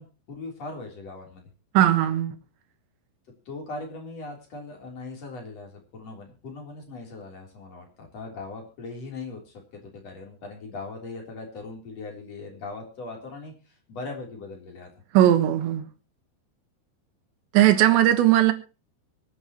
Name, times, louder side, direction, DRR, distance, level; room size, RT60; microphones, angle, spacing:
voice 1, 0.0-1.5 3.5-14.9, left 3 dB, 35° left, 4.2 m, -39 dB
voice 2, 1.7-2.4 15.1-15.9 17.5-18.5, right 13 dB, 75° right, 3.4 m, -18 dB
24.0 x 9.8 x 3.0 m
omnidirectional pair, 5.4 m